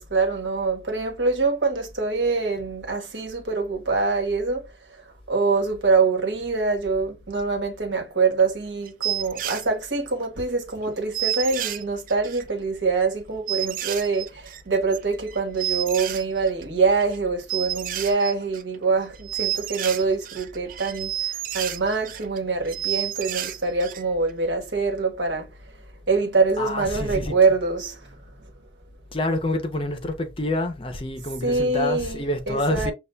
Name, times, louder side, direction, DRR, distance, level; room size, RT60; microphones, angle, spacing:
voice 1, 0.0-4.6 5.3-25.5 26.1-28.1 31.4-32.9, right 4 dB, 80° right, 1.2 m, -24 dB
sound 1, 8.4-8.5 8.9-9.6 10.2-10.3 10.5-10.6 10.8-10.9 11.1-12.5 13.0-13.1 13.5-16.6 16.9-17.2 17.5-18.8 19.1-22.4 22.6-24.0 24.3-24.4, right 12 dB, 45° right, 0.3 m, -30 dB
voice 2, 26.6-27.4 29.1-32.9, left 1 dB, 30° left, 0.6 m, -27 dB
6.7 x 2.3 x 2.2 m
head